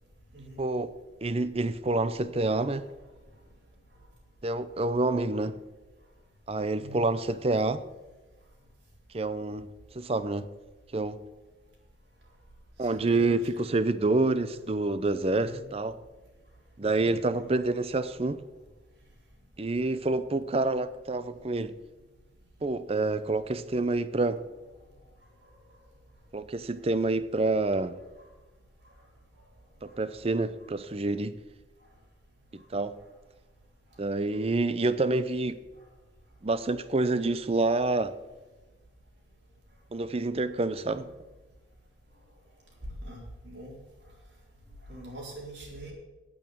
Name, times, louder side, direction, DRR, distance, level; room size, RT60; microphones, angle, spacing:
voice 1, 0.6-0.9 1.2-2.9 4.4-5.6 6.5-7.8 9.1-9.7 9.9-10.5 10.9-11.2 12.8-16.0 16.8-18.4 19.6-21.8 22.6-24.4 26.3-28.0 29.8-31.4 32.5-32.9 34.0-35.6 36.4-38.1 39.9-41.1, right 2 dB, 35° right, 14 dB, 0.6 m, -27 dB
voice 2, 6.8-7.1 12.9-13.7 14.5-14.6 15.4-15.7 17.3-17.6 43.0-43.7 44.9-45.9, right 1 dB, 70° right, -1 dB, 3.8 m, -44 dB
8.9 x 8.7 x 7.6 m, 1.2 s
head